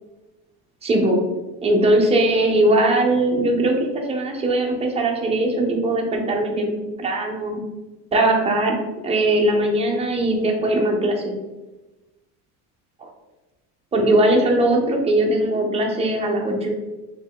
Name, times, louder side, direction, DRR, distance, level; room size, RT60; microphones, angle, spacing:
voice 1, 0.8-1.2 1.6-7.6 8.1-8.8 9.0-11.3 13.0-13.1 13.9-16.7, right 1 dB, 15° right, 1 dB, 0.6 m, -20 dB
3.4 x 2.3 x 3.5 m, 1.1 s
supercardioid pair, 105°, 44 cm